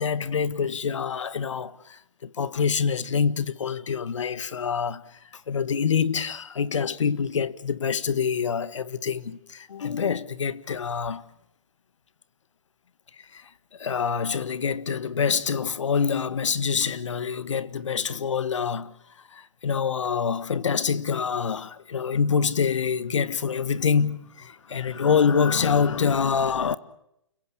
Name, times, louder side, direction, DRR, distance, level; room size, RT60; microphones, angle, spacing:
voice 1, 0.0-5.0 5.5-11.2 13.3-13.4 13.8-18.9 19.3-26.8, left 6 dB, 70° left, 1.6 m, -26 dB
29.5 x 16.5 x 8.6 m
hypercardioid pair, 175°, 16 cm